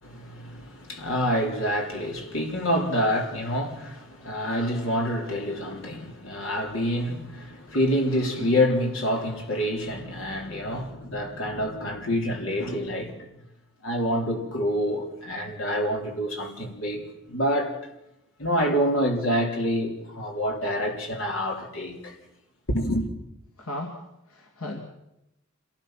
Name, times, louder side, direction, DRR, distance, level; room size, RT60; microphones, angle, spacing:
voice 1, 0.0-13.3 13.8-17.8 18.4-22.1 22.7-23.1, equal, 60° left, 3.7 m, -27 dB
voice 2, 23.6-24.8, left 1 dB, 80° left, 2.6 m, -36 dB
26.5 x 18.5 x 6.0 m
head